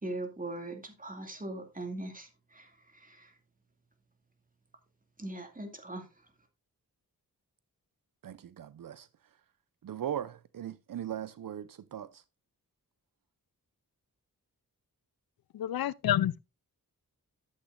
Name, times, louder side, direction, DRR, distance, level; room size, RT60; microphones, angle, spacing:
voice 1, 0.0-3.3 5.2-6.1, right 2 dB, 25° right, 2.4 m, -40 dB
voice 2, 8.2-9.1 9.8-12.2, right 10 dB, 65° right, 0.5 m, -39 dB
voice 3, 15.5-16.4, left 11 dB, 80° left, 0.5 m, -28 dB
11.5 x 8.0 x 2.5 m
wide cardioid pair, 70°, 36 cm